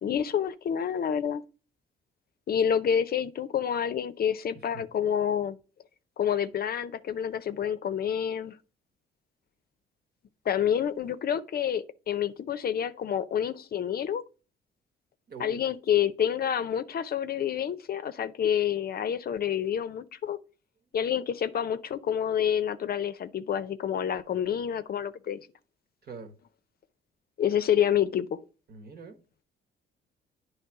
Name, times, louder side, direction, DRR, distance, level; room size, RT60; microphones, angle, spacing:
voice 1, 0.0-1.4 2.5-5.6 6.2-8.6 10.5-14.2 15.4-20.4 20.9-25.4 27.4-28.4, left 9 dB, 50° left, 0.6 m, -28 dB
voice 2, 15.3-15.7 26.0-26.3 28.7-29.2, right 4 dB, 55° right, 1.3 m, -43 dB
9.6 x 3.3 x 4.7 m
cardioid pair, 90°, 20 cm